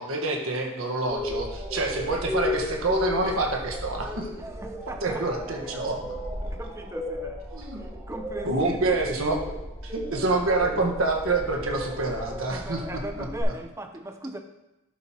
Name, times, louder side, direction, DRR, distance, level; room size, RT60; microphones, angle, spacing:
voice 1, 0.0-4.3 5.0-6.1 7.5-7.8 8.4-12.8 13.2-13.3, right 2 dB, 75° right, 1 dB, 1.5 m, -27 dB
sound 1, 1.1-13.4, left 1 dB, 5° left, 3.1 m, -34 dB
voice 2, 4.4-5.5 6.4-7.4 7.8-8.8 12.5-14.4, right 1 dB, 15° right, 5 dB, 0.6 m, -39 dB
11.5 x 7.2 x 3.0 m, 0.95 s
head